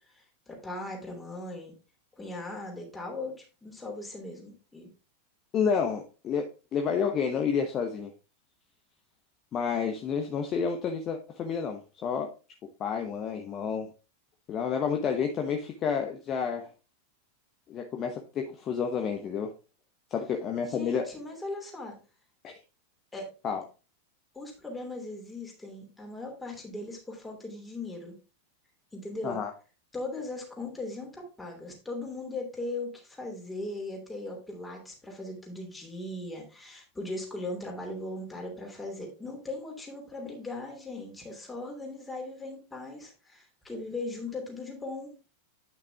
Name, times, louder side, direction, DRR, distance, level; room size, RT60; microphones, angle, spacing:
voice 1, 0.1-1.7 2.2-4.9 20.6-22.0 23.1-23.3 24.3-28.1 28.9-29.4 29.9-45.1, left 2 dB, 10° left, 1 dB, 3.1 m, -39 dB
voice 2, 5.5-8.1 9.5-12.3 12.8-13.9 14.5-16.7 17.7-19.5 20.1-21.1 22.4-22.6 23.4-23.6 29.2-29.5, left 6 dB, 30° left, 4 dB, 1.0 m, -30 dB
9.4 x 5.9 x 3.5 m, 0.32 s
figure-of-eight pair, 90°, 0 cm